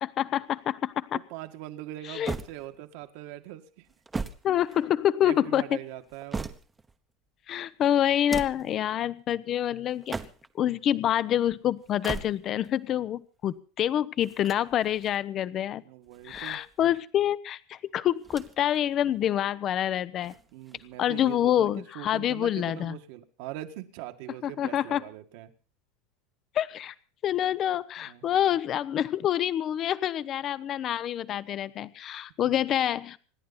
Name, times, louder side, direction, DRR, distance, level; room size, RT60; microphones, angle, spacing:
voice 1, 0.0-1.2 2.1-2.3 4.4-5.8 7.5-10.2 10.6-15.8 16.2-20.3 21.0-23.0 24.4-25.0 26.5-26.9 27.2-33.2, left 11 dB, 35° left, 16 dB, 0.7 m, -27 dB
voice 2, 1.1-3.9 4.7-4.8 5.2-6.5 8.6-8.7 15.8-16.6 20.5-25.5 28.0-28.3 32.4-32.7, right 14 dB, 65° right, 7 dB, 1.9 m, -42 dB
sound 1, 2.2-3.1 3.8-5.2 5.9-6.9 8.1-8.8 9.9-10.6 11.8-12.7 14.2-15.2 16.1-17.0 18.2-18.8 19.1-19.2 20.2-21.0, right 3 dB, 10° right, 1.0 m, -39 dB
26.5 x 10.5 x 4.2 m, 0.39 s
supercardioid pair, 140°, 0 cm